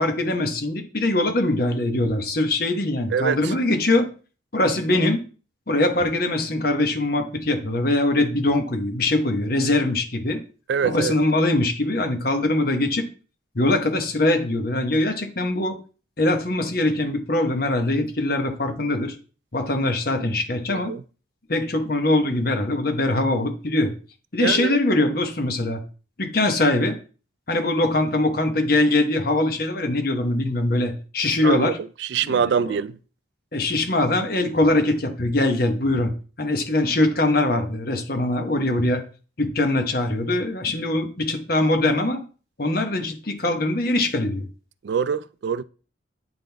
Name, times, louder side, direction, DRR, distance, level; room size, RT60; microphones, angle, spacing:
voice 1, 0.0-4.1 4.5-5.2 5.7-10.4 10.8-13.0 13.5-15.8 16.2-19.1 19.5-20.9 21.5-23.9 24.3-25.8 26.2-27.0 27.5-31.7 32.2-32.8 33.5-36.1 36.4-39.0 39.4-42.2 42.6-44.5, left 2 dB, 50° left, 1.1 m, -22 dB
voice 2, 3.1-3.5 10.7-11.1 20.7-21.0 24.4-24.8 31.4-31.7 32.0-33.0 44.8-45.6, right 6 dB, 65° right, 0.3 m, -24 dB
8.9 x 3.8 x 3.4 m
head